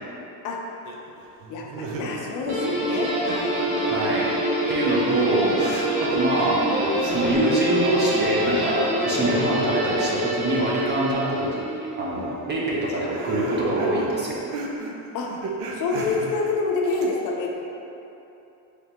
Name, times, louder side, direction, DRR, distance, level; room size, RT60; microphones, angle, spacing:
sound 1, 0.9-2.5 2.8-4.6 5.0-7.4 8.1-11.1 11.4-17.1, right 3 dB, 90° right, 0.6 m, -37 dB
voice 1, 1.5-3.6 12.1-12.4 15.1-15.3 15.7-17.6, left 3 dB, 50° left, -1 dB, 0.5 m, -27 dB
Guitar, 2.5-11.8, equal, 70° right, 1.2 m, -25 dB
voice 2, 3.9-4.3 4.7-6.6 7.0-11.6 11.9-14.4, right 1 dB, 25° right, -4 dB, 0.4 m, -24 dB
3.8 x 3.4 x 2.8 m, 2.9 s
cardioid pair, 135°, 41 cm